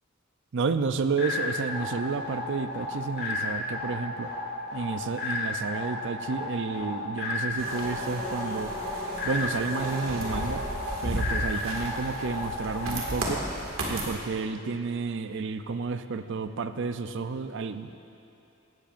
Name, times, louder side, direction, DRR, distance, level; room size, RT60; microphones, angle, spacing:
voice 1, 0.5-4.3 4.7-8.7 9.2-10.6 11.0-13.4 13.9-18.0, right 4 dB, 65° right, 10 dB, 0.5 m, -31 dB
sound 1, 1.2-13.2, left 2 dB, 55° left, 1.6 m, -34 dB
sound 2, 7.6-14.1, right 1 dB, 90° right, 2.1 m, -34 dB
16.5 x 14.0 x 2.6 m, 2.8 s
head